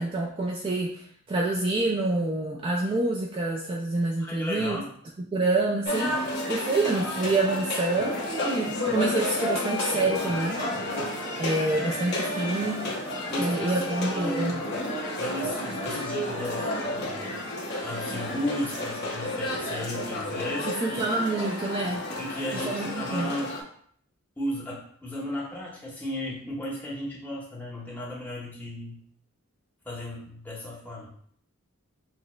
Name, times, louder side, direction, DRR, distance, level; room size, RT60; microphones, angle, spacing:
voice 1, 0.0-4.8 5.3-10.6 11.4-12.8 13.4-14.6 20.7-22.0 22.5-23.4, right 2 dB, 25° right, -1 dB, 0.3 m, -27 dB
voice 2, 4.2-4.9 13.3-14.7 15.2-17.3 17.8-21.1 22.2-23.6 24.4-29.1 29.8-31.1, left 1 dB, 10° left, -5 dB, 0.9 m, -35 dB
sound 1, 5.9-23.6, left 1 dB, 50° left, 0.8 m, -31 dB
6.1 x 2.0 x 2.2 m, 0.62 s
head